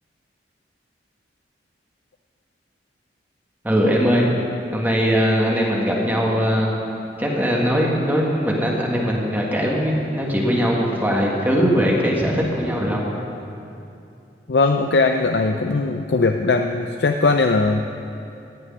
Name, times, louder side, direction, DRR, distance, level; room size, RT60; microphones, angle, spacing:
voice 1, 3.6-4.2 4.7-6.7 7.2-13.0, equal, 10° right, -3 dB, 1.6 m, -20 dB
voice 2, 14.5-17.8, left 3 dB, 70° left, 5 dB, 0.5 m, -19 dB
16.0 x 6.3 x 9.7 m, 2.7 s
head